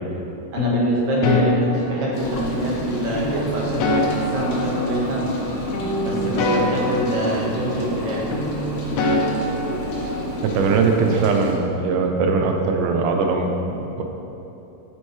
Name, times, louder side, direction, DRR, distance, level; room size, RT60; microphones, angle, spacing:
voice 1, 0.5-5.3 6.0-8.2, right 1 dB, 65° right, -5 dB, 2.5 m, -25 dB
sound 1, 0.6-2.6 3.1-5.5 5.7-8.0 8.3-10.4, left 2 dB, 80° left, 1.4 m, -25 dB
Rain, 2.1-11.6, left 1 dB, 65° left, 1.3 m, -31 dB
sound 2, 2.2-11.3, equal, 40° right, 2.1 m, -36 dB
voice 2, 10.4-13.5 13.8-14.0, right 4 dB, 80° right, 3 dB, 2.1 m, -20 dB
8.9 x 7.1 x 3.2 m, 3.0 s
omnidirectional pair, 3.9 m